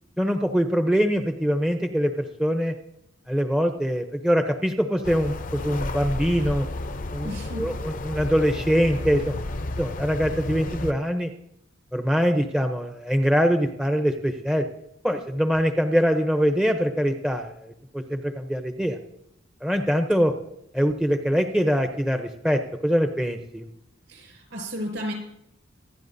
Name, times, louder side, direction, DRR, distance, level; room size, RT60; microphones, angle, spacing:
voice 1, 0.2-2.7 3.3-6.7 7.1-9.4 9.8-11.3 11.9-14.6 15.0-19.0 19.6-20.3 20.7-23.7, equal, 5° right, 5 dB, 0.6 m, -23 dB
sound 1, 5.0-10.9, left 2 dB, 40° left, 0.6 m, -32 dB
voice 2, 7.2-7.7 24.1-25.1, equal, 65° right, 0 dB, 5.6 m, -33 dB
26.0 x 10.0 x 2.6 m, 0.79 s
head